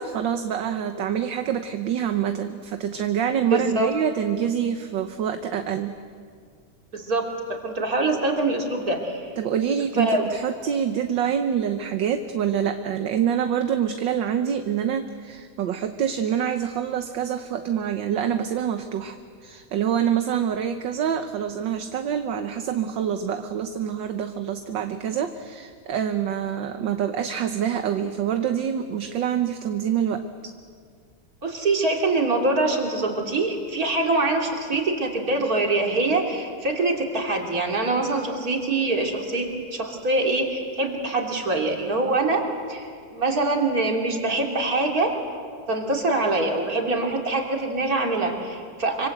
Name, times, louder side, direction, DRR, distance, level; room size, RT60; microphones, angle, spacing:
voice 1, 0.0-5.9 9.4-19.2 19.4-30.5, right 8 dB, 65° right, 7 dB, 1.6 m, -26 dB
voice 2, 3.5-3.9 6.9-9.3 10.0-10.3 31.4-45.1 45.7-49.1, right 2 dB, 45° right, 1 dB, 3.5 m, -24 dB
26.0 x 26.0 x 8.0 m, 2.1 s
omnidirectional pair, 2.3 m